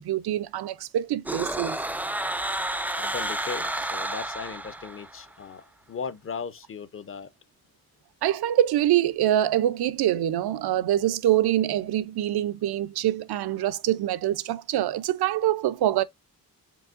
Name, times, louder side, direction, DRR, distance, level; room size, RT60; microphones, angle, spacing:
voice 1, 0.0-1.8 8.2-16.0, right 12 dB, 80° right, 0.5 m, -25 dB
sound 1, 1.3-5.3, right 1 dB, 5° right, 0.3 m, -31 dB
voice 2, 2.9-7.3, left 6 dB, 35° left, 0.6 m, -37 dB
4.7 x 3.5 x 2.5 m
cardioid pair, 95°, 37 cm